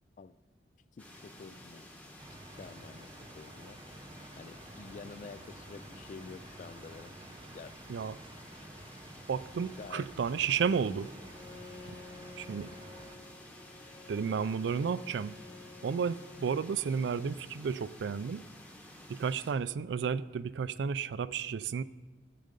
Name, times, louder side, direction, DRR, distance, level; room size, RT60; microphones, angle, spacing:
voice 1, 1.0-1.9 2.3-3.1 3.3-3.8 4.3-7.2 7.5-7.8 9.6-10.1, left 4 dB, 45° left, 17 dB, 0.3 m, -49 dB
sound 1, 1.0-19.5, left 1 dB, 10° left, 1.1 m, -52 dB
sound 2, 2.2-13.2, right 2 dB, 25° right, 0.7 m, -52 dB
voice 2, 9.3-11.1 11.9-12.0 12.4-12.7 14.1-15.4 15.8-18.4 19.1-21.8, right 6 dB, 75° right, 17 dB, 0.4 m, -32 dB
Bowed string instrument, 11.1-17.4, left 3 dB, 60° left, 1.2 m, -52 dB
14.0 x 7.6 x 5.2 m, 1.4 s
head